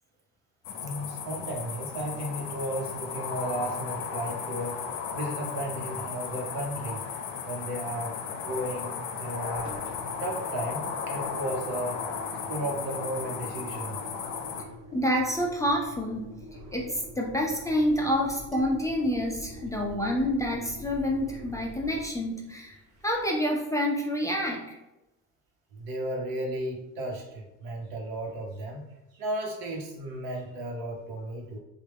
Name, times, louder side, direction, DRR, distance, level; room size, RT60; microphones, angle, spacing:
sound 1, 0.6-14.6, left 6 dB, 90° left, 0.5 m, -35 dB
voice 1, 0.8-4.8 5.1-7.1 7.4-9.7 10.2-12.0 12.5-14.0 25.7-28.8 29.1-31.6, right 1 dB, 85° right, 1 dB, 1.0 m, -34 dB
Engine, 9.5-23.5, left 1 dB, 50° right, 0.8 m, -45 dB
voice 2, 14.9-16.3 16.7-22.8 23.0-24.8, equal, 10° left, -1 dB, 0.4 m, -28 dB
sound 2, 18.5-20.9, right 3 dB, 20° right, 1.1 m, -45 dB
3.2 x 2.2 x 3.4 m, 0.94 s
cardioid pair, 115°, 37 cm